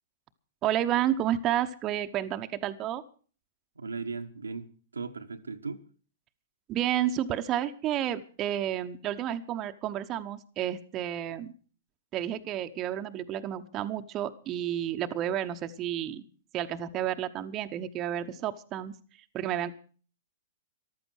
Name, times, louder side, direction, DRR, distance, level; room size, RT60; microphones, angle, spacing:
voice 1, 0.6-3.0 6.7-11.5 12.1-16.2 16.5-18.9 19.3-19.7, right 11 dB, 30° right, 1.0 m, -31 dB
voice 2, 3.8-5.8, right 4 dB, 85° right, 1.3 m, -37 dB
14.5 x 12.0 x 6.4 m
figure-of-eight pair, 110°, 0 cm